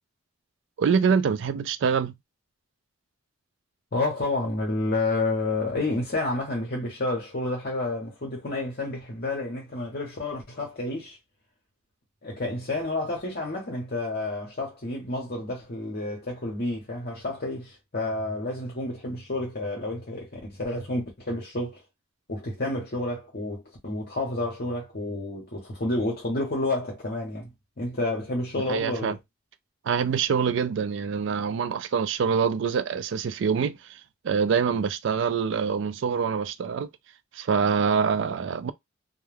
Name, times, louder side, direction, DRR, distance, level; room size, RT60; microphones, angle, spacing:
voice 1, 0.8-2.2 28.7-29.2 29.8-36.9 37.3-38.7, right 6 dB, 60° right, 0.3 m, -25 dB
voice 2, 3.9-11.2 12.2-21.8 22.3-27.5 27.8-29.2, left 2 dB, 50° left, 0.8 m, -30 dB
2.2 x 2.1 x 3.2 m
head